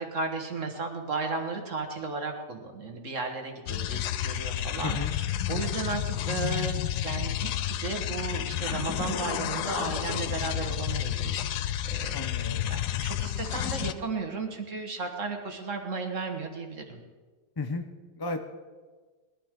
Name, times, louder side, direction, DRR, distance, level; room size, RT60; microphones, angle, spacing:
voice 1, 0.0-5.0 5.3-11.3 11.9-12.3 12.7-17.0, right 4 dB, 45° right, 3 dB, 1.8 m, -34 dB
sound 1, 3.7-13.9, left 11 dB, 75° left, 1.1 m, -31 dB
voice 2, 4.8-5.1 12.1-12.7 17.6-17.8 18.2-18.4, left 3 dB, 30° left, 6 dB, 0.4 m, -33 dB
20.5 x 12.0 x 3.7 m, 1.4 s
omnidirectional pair, 1.9 m